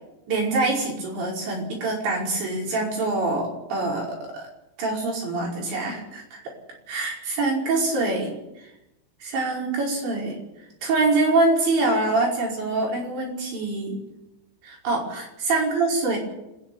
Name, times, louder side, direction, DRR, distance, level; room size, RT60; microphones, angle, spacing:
voice 1, 0.3-4.2 4.8-6.4 6.9-8.4 9.2-10.4 10.8-14.0 14.6-16.2, right 3 dB, 60° right, -2 dB, 7.5 m, -24 dB
27.5 x 10.5 x 9.6 m, 0.93 s
omnidirectional pair, 5.7 m